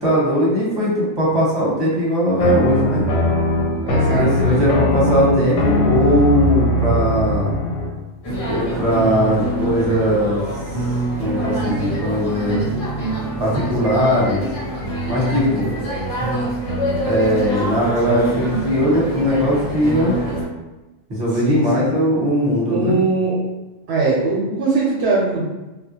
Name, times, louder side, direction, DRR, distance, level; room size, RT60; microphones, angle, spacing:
voice 1, 0.0-3.1 4.1-7.5 8.4-10.4 11.2-12.6 13.4-14.4 15.1-15.8 17.1-20.2 21.1-23.0, equal, 25° right, -6 dB, 0.8 m, -19 dB
sound 1, 2.4-8.0, left 1 dB, 90° left, 0.9 m, -20 dB
voice 2, 3.8-4.3 21.3-21.9 22.7-23.4 23.9-25.5, right 3 dB, 70° right, -4 dB, 0.8 m, -20 dB
sound 2, 8.2-20.4, right 1 dB, 60° left, 1.2 m, -25 dB
2.4 x 2.1 x 2.8 m, 1.1 s
omnidirectional pair, 1.2 m